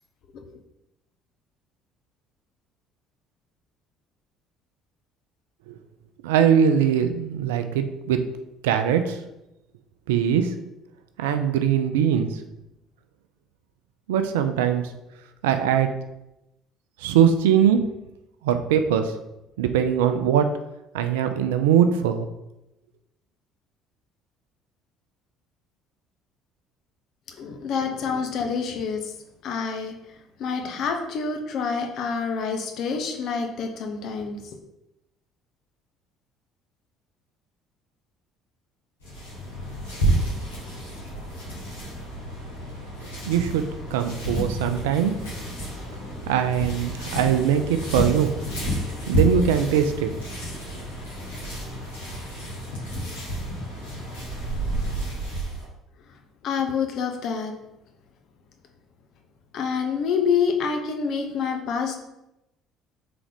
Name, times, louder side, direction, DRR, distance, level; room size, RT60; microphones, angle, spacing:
voice 1, 6.2-8.2 8.6-9.2 10.1-10.6 11.2-12.4 14.1-14.9 15.4-15.9 17.0-17.8 18.4-19.2 19.6-20.5 20.9-22.3 43.3-43.6 43.9-45.2 46.3-48.3 49.1-50.1, right 8 dB, 80° right, 8 dB, 0.3 m, -21 dB
voice 2, 27.3-29.1 29.4-29.9 30.4-34.4 56.4-57.5 59.5-62.0, left 6 dB, 60° left, 3 dB, 0.7 m, -27 dB
sound 1, 39.0-55.7, right 1 dB, 85° left, 1.4 m, -30 dB
3.9 x 3.6 x 3.4 m, 0.90 s
hypercardioid pair, 60°, 0 cm